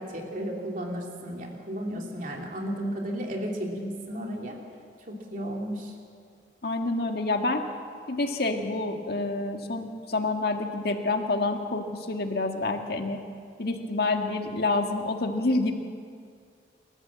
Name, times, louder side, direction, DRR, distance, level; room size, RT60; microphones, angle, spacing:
voice 1, 0.0-4.6 5.1-5.9, equal, 50° right, 0 dB, 3.2 m, -33 dB
voice 2, 6.6-7.6 8.1-13.2 13.6-15.7, left 2 dB, 60° left, 4 dB, 1.8 m, -28 dB
28.5 x 13.5 x 7.6 m, 2.2 s
head